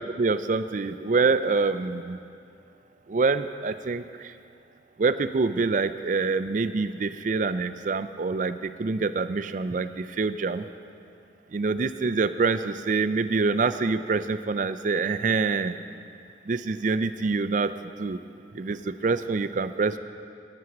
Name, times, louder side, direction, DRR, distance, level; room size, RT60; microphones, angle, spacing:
voice 1, 0.0-2.2 3.1-4.0 5.0-10.6 11.5-15.8 16.5-17.7 18.0-18.2 18.5-20.0, right 4 dB, 45° right, 11 dB, 0.4 m, -26 dB
13.0 x 9.1 x 5.9 m, 2.5 s
head